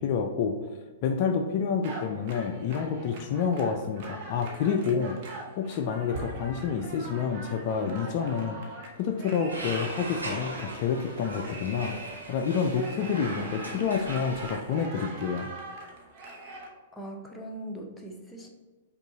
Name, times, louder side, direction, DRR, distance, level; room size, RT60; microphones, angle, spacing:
voice 1, 0.0-12.0 12.3-15.5, left 6 dB, 45° left, 5 dB, 0.3 m, -29 dB
sound 1, 1.8-16.7, right 2 dB, 45° right, 0.9 m, -42 dB
sound 2, 9.5-14.5, right 1 dB, 90° right, 1.4 m, -40 dB
voice 2, 16.9-18.5, right 1 dB, 5° left, 0 dB, 0.7 m, -40 dB
5.2 x 2.4 x 3.9 m, 1.2 s
figure-of-eight pair, 110°, 0 cm